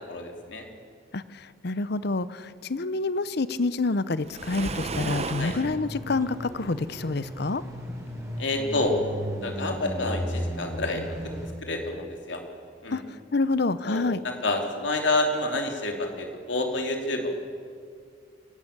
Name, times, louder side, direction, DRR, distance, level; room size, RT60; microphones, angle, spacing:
voice 1, 0.1-0.6 5.4-5.5 8.4-8.9 9.4-11.0 11.6-12.4 12.8-13.0 13.8-17.3, left 2 dB, 75° left, 3 dB, 3.1 m, -28 dB
voice 2, 1.1-7.6 12.9-13.0 13.3-14.2, left 3 dB, 60° left, 15 dB, 0.7 m, -27 dB
Waves surf, 4.3-5.8, right 3 dB, 35° right, 0.9 m, -32 dB
sound 1, 5.4-11.5, equal, 15° right, 4.0 m, -35 dB
27.0 x 12.0 x 8.7 m, 2.2 s
head